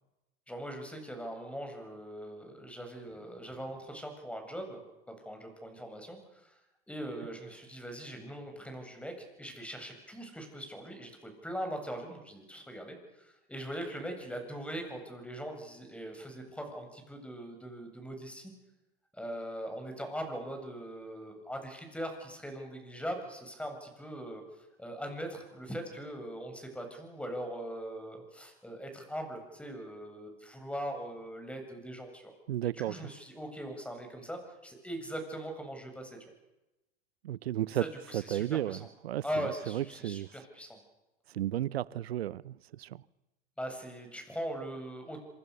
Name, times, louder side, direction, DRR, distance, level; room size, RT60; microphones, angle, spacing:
voice 1, 0.5-4.8 5.1-6.6 6.9-9.1 9.4-18.5 19.1-24.4 24.8-32.3 32.8-36.2 37.7-38.8 39.2-40.8 43.6-45.2, equal, 5° left, 8.0 m, -41 dB
voice 2, 32.5-32.9 37.2-37.9 38.1-40.3 41.3-43.0, right 12 dB, 85° right, 0.8 m, -33 dB
26.5 x 26.0 x 6.9 m
hypercardioid pair, 95°, 30 cm